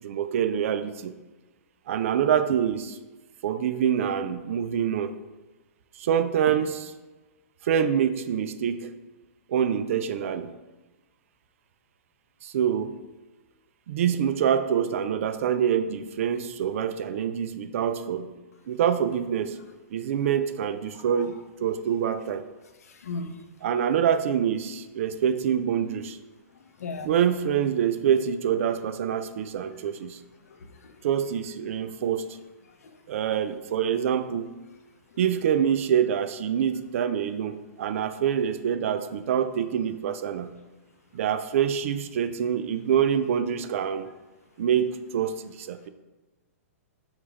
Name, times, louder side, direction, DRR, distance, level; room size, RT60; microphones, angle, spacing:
voice 1, 0.0-1.2 1.9-3.0 3.4-5.1 6.0-6.9 7.6-8.9 9.5-10.5 12.4-13.0 13.9-18.4 18.7-19.6 19.9-22.5 23.6-26.2 27.0-30.2 31.0-32.4 33.1-34.6 35.2-40.6 41.1-44.1 44.6-45.9, right 8 dB, 60° right, 11 dB, 0.3 m, -26 dB
voice 2, 22.8-23.4 26.8-27.1 30.5-30.9 32.8-32.9, left 3 dB, 85° left, 6 dB, 0.6 m, -37 dB
6.0 x 2.4 x 3.3 m, 1.2 s
hypercardioid pair, 135°, 8 cm